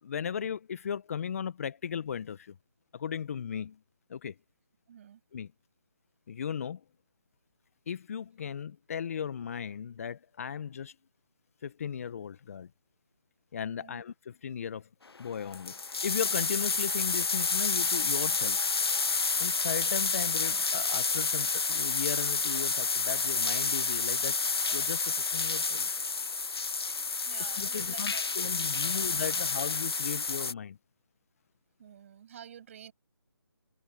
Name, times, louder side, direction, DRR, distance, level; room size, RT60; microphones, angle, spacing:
voice 1, 0.0-2.5 2.9-3.8 4.1-4.3 5.3-5.5 6.3-6.8 7.9-10.9 11.6-12.7 13.5-14.9 15.2-18.6 19.4-24.4 24.7-25.9 27.4-30.8, left 7 dB, 35° left, 1.3 m, -36 dB
voice 2, 4.9-5.2 13.8-14.0 27.2-28.3 28.6-29.0 29.3-29.4 31.8-32.9, right 9 dB, 35° right, 7.3 m, -50 dB
sound 1, 15.2-15.3 15.4-30.5, left 4 dB, 80° left, 0.6 m, -29 dB
figure-of-eight pair, 155°, 13 cm